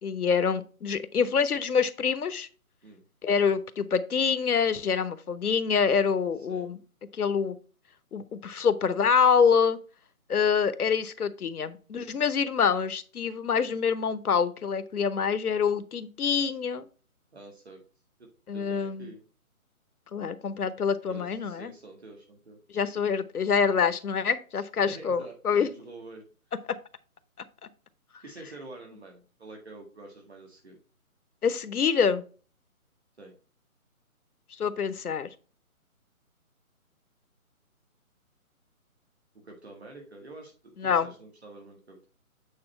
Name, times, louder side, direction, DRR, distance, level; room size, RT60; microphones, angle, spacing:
voice 1, 0.0-2.5 3.2-6.8 7.2-7.5 8.1-9.8 10.3-16.9 18.5-19.1 20.1-21.7 22.7-25.7 31.4-32.2 34.6-35.3 40.8-41.1, left 6 dB, 85° left, 1.0 m, -26 dB
voice 2, 6.4-6.7 17.3-17.8 18.2-19.2 21.1-22.6 24.6-26.2 28.2-30.8 33.2-33.3 39.3-42.1, right 2 dB, 45° right, 1.8 m, -47 dB
8.7 x 4.0 x 4.3 m
hypercardioid pair, 180°, 43 cm